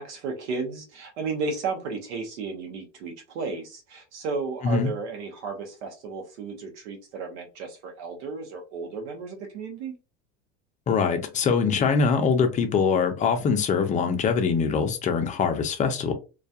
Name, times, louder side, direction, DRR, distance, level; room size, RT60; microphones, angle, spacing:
voice 1, 0.0-9.9, right 4 dB, 80° right, 0.8 m, -33 dB
voice 2, 10.9-16.1, left 5 dB, 20° left, 0.4 m, -23 dB
2.3 x 2.2 x 2.6 m
supercardioid pair, 130°, 34 cm